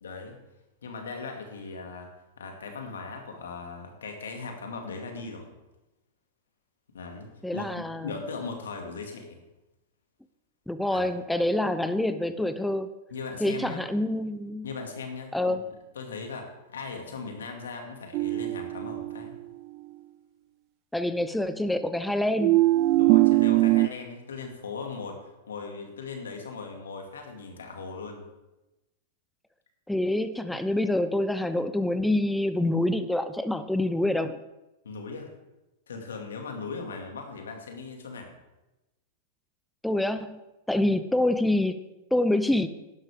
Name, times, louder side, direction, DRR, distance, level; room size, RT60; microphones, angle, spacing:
voice 1, 0.0-0.4 0.8-2.1 2.4-5.5 6.9-9.4 10.9-11.0 13.1-13.8 14.6-15.6 16.0-19.3 22.9-28.2 30.5-30.6 34.8-35.3 35.9-38.3 41.1-41.2, left 4 dB, 85° left, 3 dB, 2.3 m, -38 dB
voice 2, 7.4-8.2 10.7-12.9 13.4-14.7 15.3-15.6 20.9-22.6 29.9-34.4 39.8-40.4 40.7-41.8 42.1-42.7, left 1 dB, 5° left, 10 dB, 0.6 m, -26 dB
sound 1, 18.1-19.5 22.4-23.9, right 18 dB, 50° right, 0.3 m, -21 dB
11.5 x 11.0 x 3.6 m, 1.0 s
hypercardioid pair, 110°, 0 cm